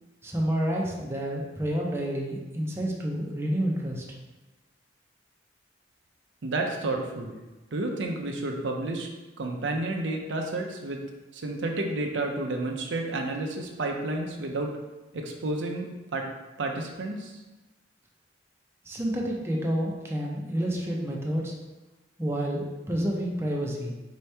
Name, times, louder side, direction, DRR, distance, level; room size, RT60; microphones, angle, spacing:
voice 1, 0.2-4.0 18.9-21.5 22.2-24.0, equal, 15° right, -2 dB, 0.5 m, -29 dB
voice 2, 6.4-7.4 7.7-9.1 9.4-11.0 11.3-14.7 15.1-16.3 16.6-17.4, right 2 dB, 90° right, 2 dB, 0.6 m, -31 dB
4.4 x 2.9 x 3.3 m, 1.1 s
head